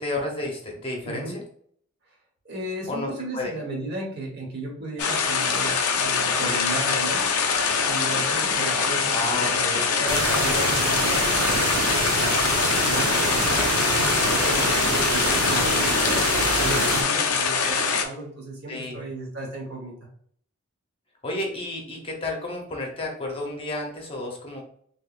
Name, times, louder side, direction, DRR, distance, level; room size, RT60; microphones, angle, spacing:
voice 1, 0.0-1.4 2.9-3.5 9.0-10.0 18.7-19.0 21.2-24.7, left 2 dB, 25° left, 0 dB, 0.8 m, -31 dB
voice 2, 1.0-1.4 2.4-7.2 7.8-11.2 11.5-12.3 12.8-13.5 14.2-19.9, right 1 dB, 50° right, -2 dB, 1.1 m, -35 dB
sound 1, 5.0-18.1, left 5 dB, 80° left, 0.5 m, -23 dB
sound 2, 10.1-17.0, right 3 dB, 70° right, 0.6 m, -26 dB
3.5 x 3.0 x 2.4 m, 0.62 s
head